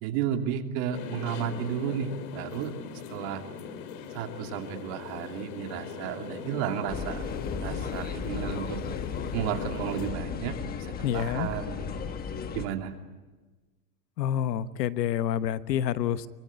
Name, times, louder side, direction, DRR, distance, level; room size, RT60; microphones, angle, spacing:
voice 1, 0.0-2.7 3.1-3.4 4.1-7.2 7.6-8.8 9.3-11.9 12.5-12.9, right 9 dB, 45° right, 4 dB, 2.9 m, -33 dB
sound 1, 0.9-10.1, left 6 dB, 60° left, 2.7 m, -40 dB
sound 2, 6.9-12.7, left 6 dB, 20° left, 1.2 m, -35 dB
voice 2, 11.0-11.5 14.2-16.3, left 10 dB, 80° left, 13 dB, 1.3 m, -28 dB
24.0 x 23.0 x 9.6 m, 1.3 s
supercardioid pair, 150°, 49 cm